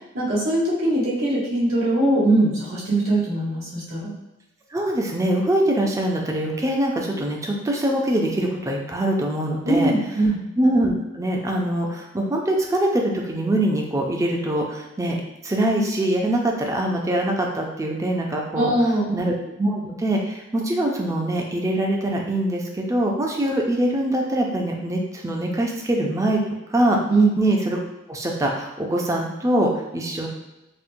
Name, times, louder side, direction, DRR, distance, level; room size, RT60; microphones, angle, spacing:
voice 1, 0.1-4.1 9.6-10.4 18.6-19.2 27.1-27.4, right 2 dB, 80° right, -8 dB, 1.4 m, -21 dB
voice 2, 4.7-9.9 10.6-18.7 19.1-26.4 26.7-27.0 27.4-27.8 28.1-30.3, right 1 dB, 15° right, 0 dB, 0.4 m, -23 dB
4.2 x 2.1 x 2.6 m, 0.98 s
head